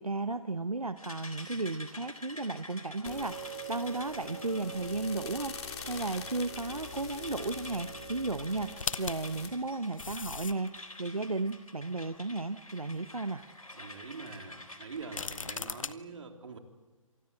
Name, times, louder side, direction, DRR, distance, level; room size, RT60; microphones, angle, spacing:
voice 1, 0.0-10.7 11.0-13.4, right 3 dB, 90° right, 11 dB, 1.0 m, -34 dB
sound 1, 1.0-15.6, left 1 dB, 85° left, 3.8 m, -48 dB
sound 2, 3.1-9.5, equal, 50° left, 3.5 m, -43 dB
sound 3, 8.8-10.8 11.5-11.6 15.0-15.9, left 5 dB, 70° left, 1.0 m, -37 dB
voice 2, 13.7-16.6, right 4 dB, 60° right, 4 dB, 3.6 m, -44 dB
27.0 x 20.0 x 7.6 m, 1.2 s
figure-of-eight pair, 135°, 18 cm